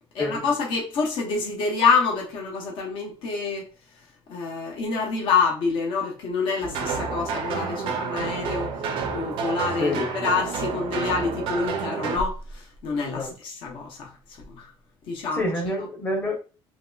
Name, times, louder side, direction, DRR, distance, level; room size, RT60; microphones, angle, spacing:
voice 1, 0.1-3.7 4.3-8.7 9.1-14.1 14.5-14.7 15.1-15.5, left 5 dB, 55° left, 0.9 m, -27 dB
sound 1, 6.6-12.2, right 5 dB, 60° right, 0.5 m, -29 dB
voice 2, 15.3-16.4, left 1 dB, 15° left, 0.8 m, -27 dB
3.0 x 2.9 x 2.2 m
cardioid pair, 175°, 10 cm